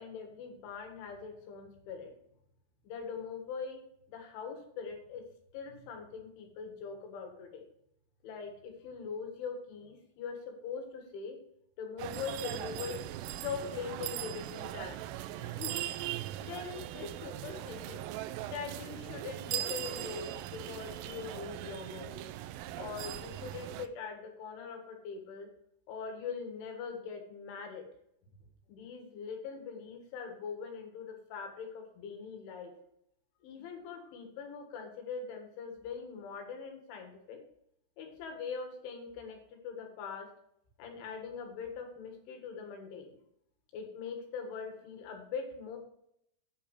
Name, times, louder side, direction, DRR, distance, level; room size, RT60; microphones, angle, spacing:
voice 1, 0.0-2.1 2.8-3.8 4.1-5.2 5.5-7.7 8.2-11.4 11.8-13.0 13.4-15.0 15.4-15.8 16.4-18.1 18.5-22.3 22.8-25.5 25.9-27.9 28.7-32.7 33.4-37.4 38.0-40.3 40.8-43.2 43.7-45.8, left 6 dB, 75° left, 3 dB, 4.1 m, -42 dB
sound 1, 12.0-23.9, right 13 dB, 85° right, 3.0 m, -40 dB
9.4 x 6.9 x 4.9 m, 0.75 s
omnidirectional pair, 5.8 m